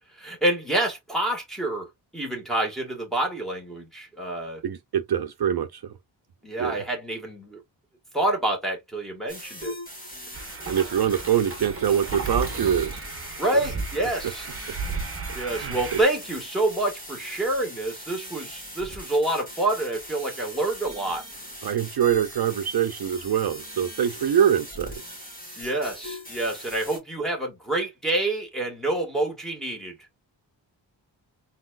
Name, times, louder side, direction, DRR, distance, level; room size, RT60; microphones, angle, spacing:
voice 1, 0.1-4.6 6.4-7.6 8.1-9.7 13.4-14.5 15.3-21.2 25.6-30.0, right 1 dB, ahead, 1.7 m, -27 dB
voice 2, 4.6-5.9 6.6-6.8 10.7-13.0 15.5-16.0 21.6-25.2, right 9 dB, 60° right, 0.5 m, -24 dB
sound 1, 9.3-27.0, equal, 20° left, 2.5 m, -41 dB
sound 2, 10.3-16.0, right 4 dB, 30° right, 1.4 m, -34 dB
4.1 x 4.0 x 2.4 m
wide cardioid pair, 175°, 44 cm